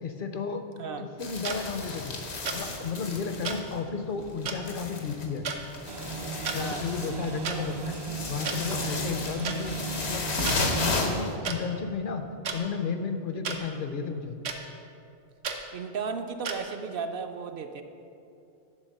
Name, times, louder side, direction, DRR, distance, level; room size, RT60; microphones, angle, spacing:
voice 1, 0.0-0.7 1.0-2.2 2.5-5.4 6.5-8.0 8.2-9.7 10.0-12.3 12.5-14.4, left 5 dB, 60° left, 7 dB, 0.7 m, -33 dB
sound 1, 1.2-3.9 4.2-11.3, left 3 dB, 90° left, 1.2 m, -34 dB
sound 2, 1.4-1.6 2.5-2.6 3.4-3.6 4.5-4.6 5.4-5.6 6.3-6.6 7.4-7.6 8.5-8.6 9.4-9.6 10.5-10.6 11.4-11.6 12.4-12.6 13.4-13.6 14.4-14.6 15.4-15.6 16.4-16.6, right 6 dB, 90° right, 1.0 m, -32 dB
sound 3, 5.8-11.0, right 4 dB, 45° right, 0.3 m, -36 dB
voice 2, 6.5-6.9 15.7-17.8, right 5 dB, 65° right, 7 dB, 0.7 m, -34 dB
9.7 x 3.9 x 6.5 m, 2.6 s
omnidirectional pair, 1.1 m